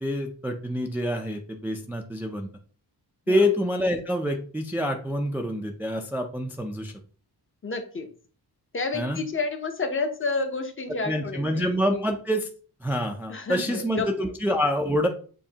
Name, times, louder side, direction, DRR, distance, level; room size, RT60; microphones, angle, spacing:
voice 1, 0.0-2.5 3.3-6.9 8.9-9.2 11.0-12.5 12.8-15.1, equal, 5° right, 3 dB, 0.4 m, -26 dB
voice 2, 7.6-8.1 8.7-12.0 13.3-14.1, left 3 dB, 30° left, 6 dB, 0.7 m, -30 dB
7.0 x 2.6 x 2.8 m, 0.41 s
wide cardioid pair, 120°, 40 cm